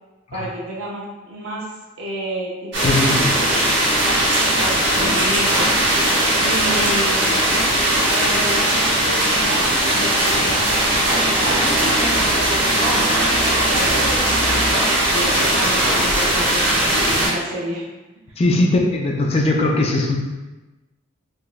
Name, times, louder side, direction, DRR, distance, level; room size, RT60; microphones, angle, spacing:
voice 1, 0.3-3.4 4.6-5.7 6.4-7.5 8.1-14.0 15.1-17.9 18.3-18.4, right 1 dB, 85° right, -4 dB, 0.6 m, -31 dB
sound 1, 2.7-17.3, right 1 dB, 60° right, 0.9 m, -18 dB
voice 2, 2.8-3.3 18.4-20.2, left 2 dB, 30° left, 0 dB, 0.3 m, -19 dB
3.9 x 2.3 x 2.4 m, 1.1 s
head